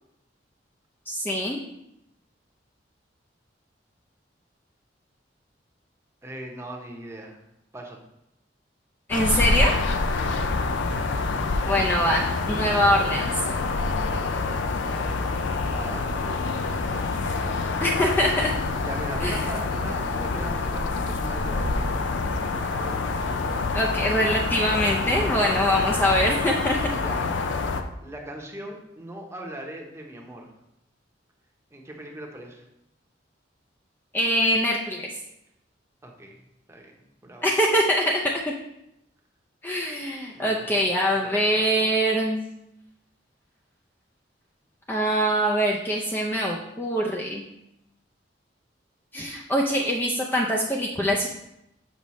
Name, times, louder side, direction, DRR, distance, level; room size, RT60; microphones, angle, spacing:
voice 1, 1.1-1.6 9.1-9.7 11.7-13.3 17.8-18.5 19.2-19.4 23.7-26.8 34.1-35.1 37.4-38.4 39.6-42.4 44.9-47.5 49.1-51.3, equal, 10° left, -2 dB, 0.5 m, -23 dB
voice 2, 6.2-7.4 7.7-8.0 10.2-10.3 15.6-17.8 18.8-23.3 25.1-25.7 27.0-27.2 28.0-30.5 31.7-32.6 36.0-37.5 40.3-40.7 41.1-41.6, right 1 dB, 15° right, 1 dB, 0.9 m, -40 dB
sound 1, 9.1-27.8, left 3 dB, 85° left, 0.5 m, -26 dB
7.0 x 5.2 x 3.1 m, 0.84 s
head